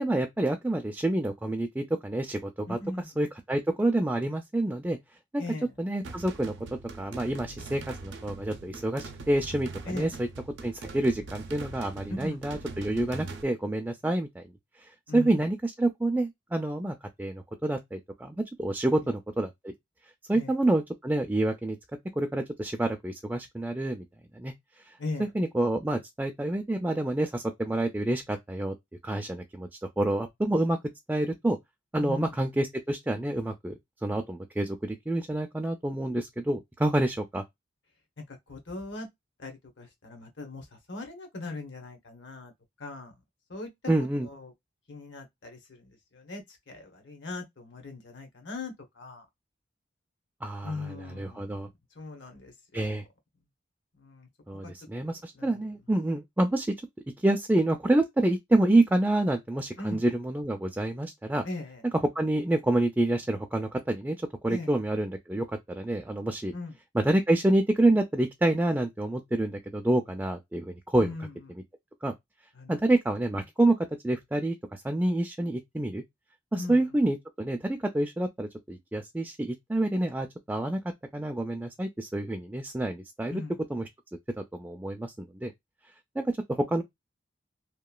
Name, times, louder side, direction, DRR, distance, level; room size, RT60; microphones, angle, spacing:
voice 1, 0.0-2.8 3.2-5.0 5.3-5.4 5.8-10.3 10.6-14.4 14.8-19.7 20.3-21.8 22.2-24.0 24.3-24.5 24.9-25.0 25.2-28.7 29.0-29.7 30.0-30.8 31.1-31.6 31.9-37.4 43.9-44.3 50.4-51.7 52.7-53.0 54.5-56.7 57.2-61.4 62.2-64.2 64.4-66.5 66.9-71.1 72.0-72.1 72.7-73.8 74.0-76.0 76.5-80.8 81.1-83.3 83.7-83.8 84.3-85.5 86.2-86.8, right 1 dB, 10° right, 0.3 m, -28 dB
voice 2, 2.7-3.1 5.4-5.7 9.9-10.1 12.1-12.4 15.1-15.5 18.9-19.0 20.3-20.5 25.0-25.3 32.0-32.2 38.3-39.1 39.4-42.5 42.8-43.1 43.5-43.7 44.2-44.5 44.9-49.3 50.6-53.0 54.0-54.7 55.0-55.6 59.8-60.0 61.4-61.8 64.5-64.7 66.5-66.8 71.0-71.3 72.6-72.8 76.5-76.8 83.3-83.6, left 2 dB, 70° left, 0.9 m, -39 dB
sound 1, 6.0-13.4, right 3 dB, 75° right, 0.5 m, -42 dB
2.9 x 2.2 x 2.3 m
head